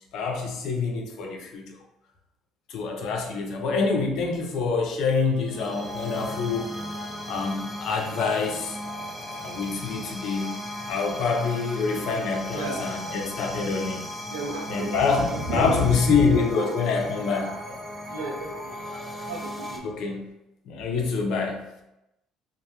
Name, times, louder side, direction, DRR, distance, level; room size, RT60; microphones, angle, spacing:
voice 1, 0.1-1.7 2.7-6.7 7.2-8.8 9.4-10.6 10.9-14.0 14.7-17.5 19.8-20.2 20.7-21.6, left 4 dB, 65° left, 1 dB, 0.5 m, -26 dB
sound 1, 5.1-19.8, equal, 5° right, 0.5 m, -36 dB
voice 2, 12.5-13.4 14.3-16.7 17.3-20.1, equal, 85° right, 0 dB, 0.5 m, -33 dB
2.1 x 2.0 x 2.9 m, 0.88 s
hypercardioid pair, 60°, 0 cm